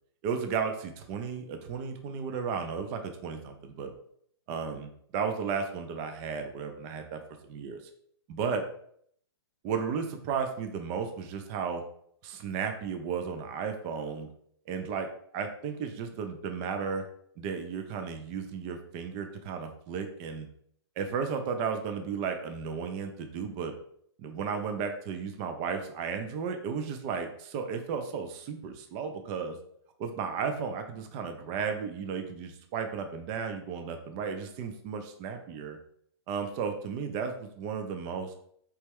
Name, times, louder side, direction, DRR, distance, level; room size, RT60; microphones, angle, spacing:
voice 1, 0.2-3.9 4.5-7.2 7.5-7.8 8.3-8.6 9.6-11.8 12.2-14.3 14.7-15.1 15.3-17.0 17.4-20.5 21.0-23.7 24.2-29.6 30.0-35.8 36.3-38.3, right 6 dB, 30° right, 6 dB, 0.5 m, -34 dB
4.2 x 3.2 x 3.5 m, 0.66 s
hypercardioid pair, 135°, 14 cm